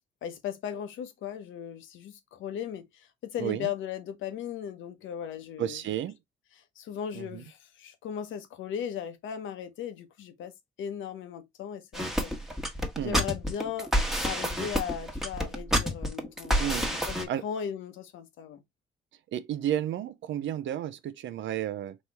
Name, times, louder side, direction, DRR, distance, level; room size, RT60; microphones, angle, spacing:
voice 1, 0.2-5.8 6.5-10.5 10.8-12.3 13.0-13.9 14.2-18.6, left 8 dB, 80° left, 0.9 m, -37 dB
voice 2, 5.6-6.2 7.1-7.4 13.0-13.2 16.6-16.9 17.3-17.4 19.3-22.0, right 11 dB, 70° right, 0.6 m, -32 dB
sound 1, 11.9-17.2, equal, ahead, 1.2 m, -28 dB
4.2 x 3.1 x 3.3 m
cardioid pair, 90°, 20 cm